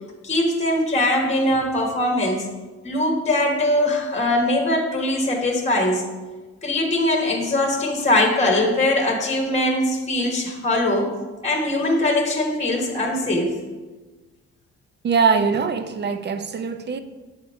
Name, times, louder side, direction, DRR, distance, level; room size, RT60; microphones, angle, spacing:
voice 1, 0.2-2.5 2.8-6.0 6.6-11.1 11.4-13.5, left 1 dB, 20° left, 2 dB, 1.1 m, -21 dB
voice 2, 15.0-17.0, right 5 dB, 35° right, 10 dB, 0.5 m, -22 dB
7.1 x 3.9 x 4.4 m, 1.3 s
cardioid pair, 90°, 30 cm